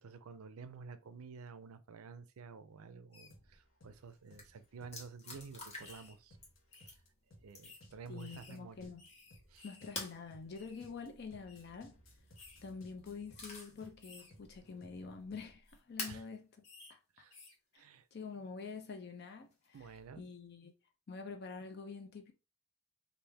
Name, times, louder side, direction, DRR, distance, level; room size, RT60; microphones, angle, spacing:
voice 1, 0.0-6.4 7.4-8.9 9.5-9.7 16.1-16.2 17.1-17.4 17.7-18.1 19.7-20.2, right 5 dB, 75° right, 0.4 m, -51 dB
sound 1, 3.1-3.3 4.1-4.3 4.6-4.7 5.2-5.4 5.8-6.2 6.7-6.9 7.6-7.8 8.2-10.0 10.3-10.9 11.5-11.7 12.4-12.6 13.1-13.3 14.0-14.3 15.5-15.8 16.6-16.9 17.3-17.6, left 3 dB, 90° left, 1.5 m, -58 dB
sound 2, 3.3-15.5, equal, 65° left, 0.9 m, -62 dB
sound 3, 4.0-4.1 4.3-4.4 4.9-6.1 6.4-7.0 7.5-7.9 9.9-10.2 12.1-12.5 13.0-13.9 14.3-14.4 16.0-16.2 17.4-17.5 19.5-20.0, left 2 dB, 30° left, 0.9 m, -46 dB
voice 2, 8.1-9.0 9.6-12.0 12.6-16.5 16.9-17.0 17.7-17.8 18.1-20.7 21.1-22.3, left 5 dB, 50° left, 0.4 m, -47 dB
3.3 x 2.5 x 3.3 m
head